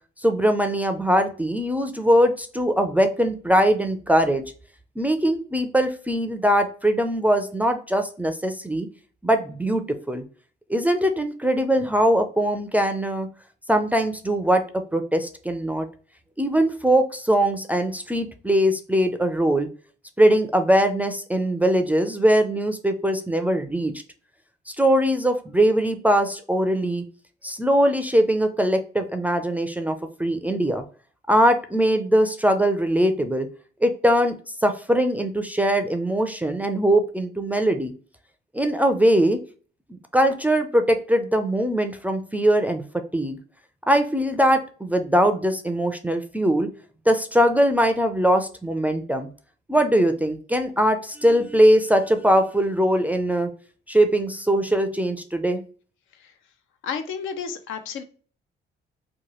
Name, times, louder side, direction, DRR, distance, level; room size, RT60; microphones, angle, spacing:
voice 1, 0.2-4.5 5.0-8.9 9.2-10.2 10.7-13.3 13.7-15.9 16.4-19.7 20.2-23.9 24.8-27.0 27.4-30.8 31.3-33.5 33.8-37.9 38.5-39.4 39.9-42.8 43.1-43.4 43.9-46.7 47.1-49.3 49.7-53.5 53.9-55.6, equal, 10° right, 6 dB, 0.3 m, -21 dB
voice 2, 56.8-58.0, left 6 dB, 85° left, 8 dB, 0.5 m, -32 dB
2.8 x 2.2 x 3.0 m, 0.40 s
cardioid pair, 90°, 20 cm